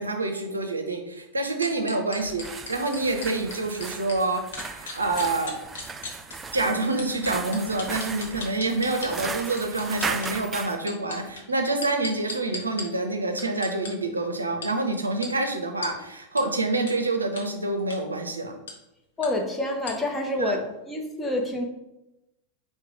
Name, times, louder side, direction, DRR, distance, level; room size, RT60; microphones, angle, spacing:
voice 1, 0.0-5.6 6.5-18.6 20.4-20.6, right 2 dB, 80° right, 5 dB, 0.6 m, -27 dB
sound 1, 1.6-4.2 4.5-6.3 7.0-9.1 9.6-10.3 10.8-12.8 13.4-13.9 14.6-14.7 15.2-15.3 15.8-15.9 16.4-16.5 16.9-17.0 17.4-17.5 17.8-18.0 18.7-18.8 19.2-19.3 19.9-20.0, left 3 dB, 65° left, 1.1 m, -36 dB
sound 2, 2.2-10.8, right 4 dB, 15° right, 0.3 m, -36 dB
voice 2, 19.2-20.6 20.9-21.7, left 1 dB, 10° left, 1 dB, 0.8 m, -27 dB
4.6 x 2.2 x 4.7 m, 0.93 s
figure-of-eight pair, 90°, 0 cm